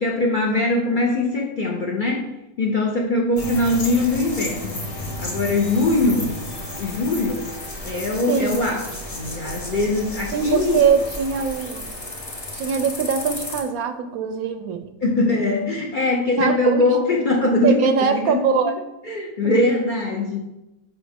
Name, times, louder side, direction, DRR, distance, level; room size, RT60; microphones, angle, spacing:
voice 1, 0.0-2.3 2.6-4.9 5.2-6.4 6.8-7.5 7.8-8.8 9.1-10.8 15.0-18.5 19.0-20.4, left 2 dB, 45° left, 0 dB, 0.6 m, -21 dB
sound 1, 3.4-13.6, left 1 dB, 25° left, 1.0 m, -33 dB
voice 2, 8.3-8.6 10.3-11.9 12.5-14.9 16.4-16.9 17.6-18.7, right 6 dB, 75° right, 8 dB, 1.0 m, -22 dB
7.1 x 4.7 x 3.5 m, 0.93 s
omnidirectional pair, 1.6 m